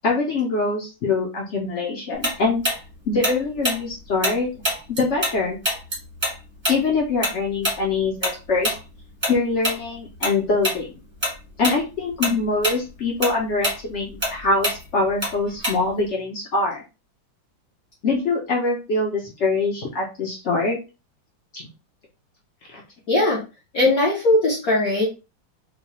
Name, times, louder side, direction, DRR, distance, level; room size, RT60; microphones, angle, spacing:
voice 1, 0.0-2.6 3.1-4.5 4.9-5.6 6.7-8.7 9.3-11.0 11.6-16.8 18.0-20.8 21.5-21.7 22.7-22.8, left 3 dB, 80° left, -1 dB, 0.6 m, -23 dB
Tick-tock, 2.2-5.4 5.6-10.4 10.6-10.8 11.2-11.8 12.1-16.1, equal, 20° right, 0.8 m, -26 dB
voice 2, 23.1-23.4 23.7-25.1, left 2 dB, 55° left, -4 dB, 1.2 m, -19 dB
3.9 x 2.3 x 2.9 m, 0.29 s
omnidirectional pair, 2.2 m